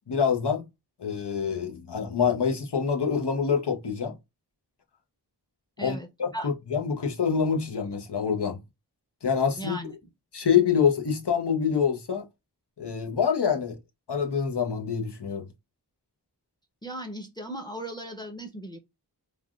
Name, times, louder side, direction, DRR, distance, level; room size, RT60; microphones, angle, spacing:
voice 1, 0.1-0.6 1.0-4.2 5.8-8.6 9.2-9.8 10.3-12.2 12.8-13.8 14.1-15.4, left 7 dB, 75° left, 0.8 m, -26 dB
voice 2, 5.8-6.1 6.3-6.5 9.6-9.9 16.8-18.8, right 1 dB, 10° left, 0.7 m, -37 dB
3.3 x 2.3 x 2.3 m
wide cardioid pair, 50°, 41 cm